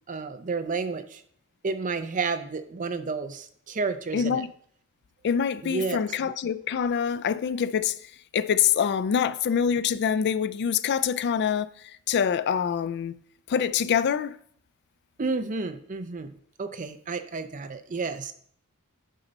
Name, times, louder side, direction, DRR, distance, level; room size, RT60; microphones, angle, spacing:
voice 1, 0.1-1.2 1.6-4.4 5.6-6.0 15.2-16.3 16.6-18.3, right 4 dB, 35° right, 0.6 m, -31 dB
voice 2, 4.1-4.5 5.2-8.0 8.3-11.7 12.1-13.1 13.5-14.4, left 7 dB, 50° left, 0.3 m, -25 dB
9.1 x 5.4 x 4.0 m
head